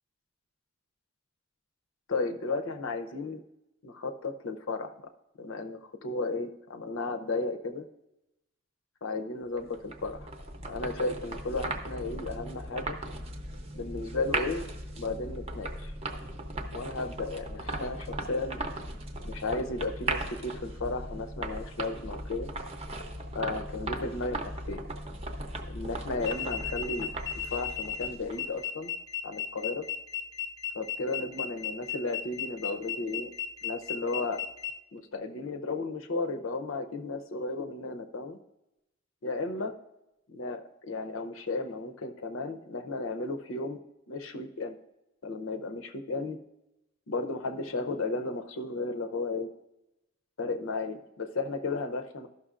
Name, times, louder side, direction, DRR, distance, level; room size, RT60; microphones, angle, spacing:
voice 1, 2.1-3.4 3.8-4.9 5.4-7.8 9.0-10.3 10.7-13.0 13.7-14.7 15.0-15.9 16.7-18.6 19.2-22.5 23.3-24.8 25.7-27.1 27.4-28.9 29.2-29.9 30.7-33.3 33.6-34.4 34.9-38.4 39.2-39.7 40.3-43.8 44.1-44.8 45.2-46.4 47.1-49.5 50.4-52.3, left 3 dB, 75° left, 6 dB, 0.7 m, -34 dB
sound 1, 9.6-28.6, right 2 dB, 30° right, 0.7 m, -38 dB
sound 2, 26.2-34.7, left 9 dB, 15° left, 0.4 m, -35 dB
13.5 x 6.0 x 2.5 m, 0.91 s
head